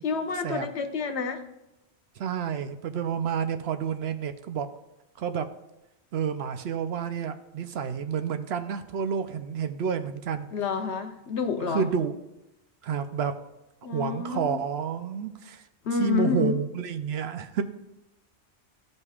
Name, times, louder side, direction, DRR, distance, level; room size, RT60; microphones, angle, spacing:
voice 1, 0.0-1.4 10.5-11.9 13.8-14.6 15.8-16.6, left 5 dB, 80° left, 1.0 m, -29 dB
voice 2, 2.2-4.7 5.2-5.5 6.1-10.5 11.7-12.1 12.8-13.3 13.9-15.6 16.0-17.6, right 7 dB, 70° right, 0.8 m, -29 dB
14.0 x 5.4 x 2.4 m
omnidirectional pair, 1.1 m